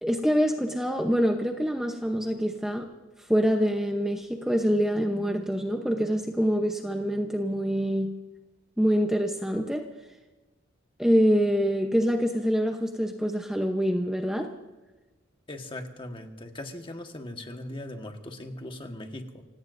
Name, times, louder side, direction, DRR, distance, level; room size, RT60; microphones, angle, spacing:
voice 1, 0.0-2.9 3.3-8.1 8.8-9.8 11.0-14.5, equal, 5° right, 3 dB, 0.8 m, -25 dB
voice 2, 15.5-19.4, left 1 dB, 25° left, 4 dB, 1.5 m, -39 dB
29.5 x 17.0 x 2.7 m, 1.2 s
head